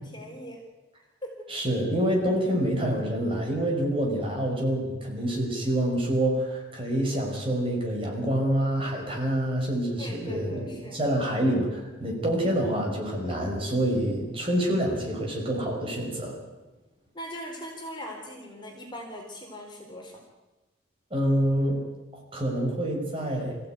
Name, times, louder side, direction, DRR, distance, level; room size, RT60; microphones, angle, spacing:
voice 1, 0.1-0.6 1.2-1.5 4.1-4.3 10.0-11.0 17.1-20.2, equal, 25° left, 1 dB, 3.9 m, -40 dB
voice 2, 1.5-16.4 21.1-21.8 22.1-23.6, right 1 dB, 25° right, 0 dB, 5.8 m, -27 dB
25.5 x 15.5 x 9.4 m, 1.1 s
head